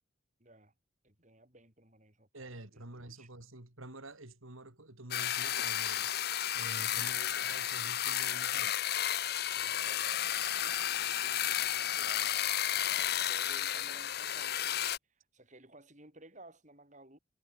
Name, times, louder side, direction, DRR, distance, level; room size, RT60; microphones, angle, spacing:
voice 1, 0.4-0.7 1.0-3.3 6.8-7.1 9.5-17.2, right 1 dB, 35° right, 7.4 m, -58 dB
voice 2, 2.3-6.1 6.5-8.8, right 1 dB, 85° right, 3.6 m, -48 dB
sound 1, 5.1-15.0, left 11 dB, 50° left, 1.0 m, -32 dB
head